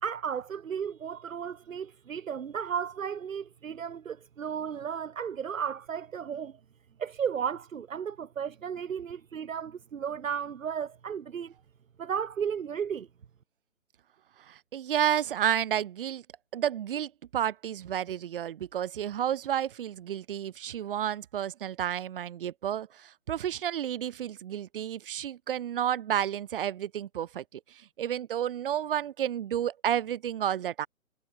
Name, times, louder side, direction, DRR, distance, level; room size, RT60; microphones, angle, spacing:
voice 1, 0.0-6.6 7.0-11.5 12.0-13.1, right 7 dB, 70° right, 0.9 m, -34 dB
voice 2, 14.5-16.2 16.5-30.9, right 10 dB, 40° right, 2.2 m, -31 dB
figure-of-eight pair, 145°, 42 cm